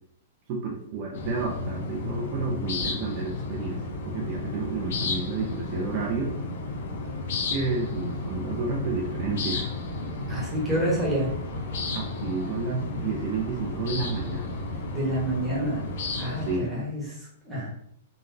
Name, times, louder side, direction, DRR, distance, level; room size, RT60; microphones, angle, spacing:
voice 1, 0.5-6.3 7.5-9.7 11.9-14.6 16.4-16.9, right 4 dB, 40° right, -2 dB, 0.5 m, -31 dB
sound 1, 1.1-16.6, left 3 dB, 65° left, 0.6 m, -33 dB
voice 2, 10.3-11.3 14.9-15.8 16.2-17.7, right 1 dB, 5° right, -7 dB, 1.2 m, -28 dB
3.9 x 2.2 x 2.7 m, 0.70 s
hypercardioid pair, 155°, 0 cm